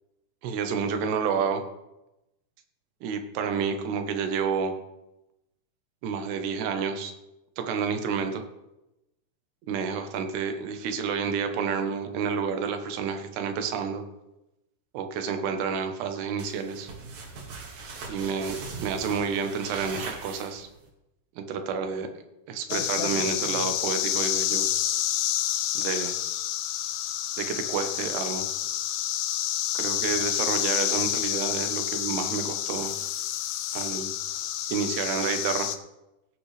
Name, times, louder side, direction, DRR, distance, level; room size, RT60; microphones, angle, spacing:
voice 1, 0.4-1.6 3.0-4.8 6.0-7.1 7.6-8.4 9.7-14.0 14.9-16.9 18.1-20.7 21.4-22.1 22.5-24.7 25.7-26.1 27.4-28.4 29.7-32.9 33.7-34.1 34.7-35.7, right 6 dB, 90° right, 6 dB, 3.2 m, -29 dB
sound 1, 16.4-20.9, right 4 dB, 65° right, 3.8 m, -40 dB
sound 2, 22.7-35.8, left 12 dB, 80° left, 2.1 m, -29 dB
16.5 x 9.0 x 3.3 m, 0.94 s
omnidirectional pair, 4.6 m